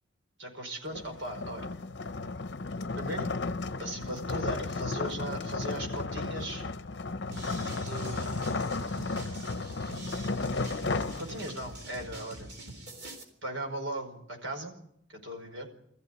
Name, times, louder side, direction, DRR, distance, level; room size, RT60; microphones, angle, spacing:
voice 1, 0.4-1.8 2.9-3.4 3.8-6.6 7.8-8.7 11.2-12.5 13.4-14.7 15.1-15.7, right 1 dB, 70° right, 3 dB, 5.0 m, -38 dB
sound 1, 0.9-11.8, left 3 dB, 55° left, 0.7 m, -34 dB
sound 2, 7.3-13.2, right 2 dB, 55° right, 3.7 m, -45 dB
21.0 x 14.5 x 9.5 m, 0.74 s
head